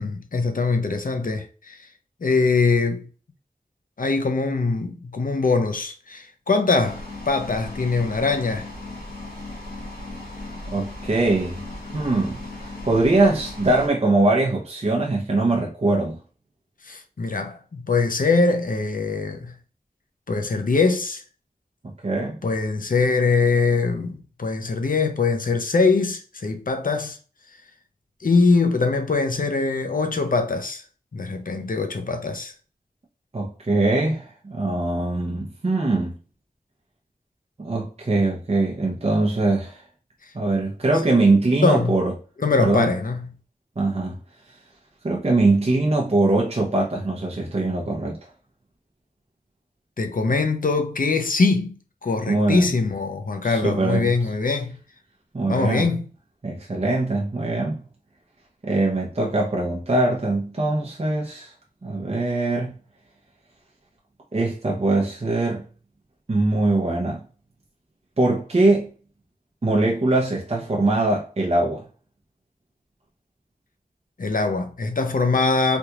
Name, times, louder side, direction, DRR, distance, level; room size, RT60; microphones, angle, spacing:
voice 1, 0.0-1.9 2.2-3.1 4.0-8.7 16.8-19.6 20.3-21.2 22.4-27.2 28.2-30.8 31.1-32.5 40.2-40.3 41.6-41.9 42.4-43.3 50.0-54.8 55.5-56.1 74.2-75.8, left 4 dB, 65° left, 0.6 m, -22 dB
sound 1, 6.8-13.9, left 2 dB, 90° left, 1.4 m, -37 dB
voice 2, 10.7-11.6 11.9-16.2 22.0-22.4 33.3-36.2 37.6-39.8 40.3-42.1 42.6-42.9 43.8-44.2 45.0-48.2 52.3-52.7 53.4-54.1 55.3-55.9 56.4-57.8 58.6-61.5 61.8-62.8 64.3-65.6 66.3-67.2 68.2-68.9 69.6-71.8, right 2 dB, 40° right, 0.6 m, -22 dB
3.5 x 2.4 x 2.9 m
wide cardioid pair, 55°, 15 cm